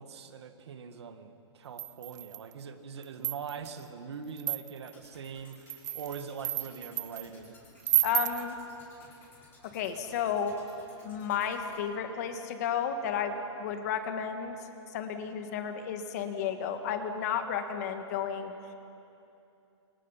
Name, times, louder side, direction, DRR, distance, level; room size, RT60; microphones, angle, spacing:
voice 1, 0.0-7.6, right 6 dB, 65° right, 7 dB, 2.1 m, -42 dB
sound 1, 1.8-2.5 3.0-3.7 4.4-4.9 5.5-7.3 7.8-8.5, right 13 dB, 35° right, 0.5 m, -31 dB
sound 2, 4.8-11.7, left 2 dB, 15° left, 5.7 m, -58 dB
voice 2, 8.0-8.6 9.7-10.5 11.0-14.6 14.9-18.5, left 7 dB, 35° left, 7 dB, 1.7 m, -32 dB
28.0 x 28.0 x 5.8 m, 2.8 s
hypercardioid pair, 170°, 15 cm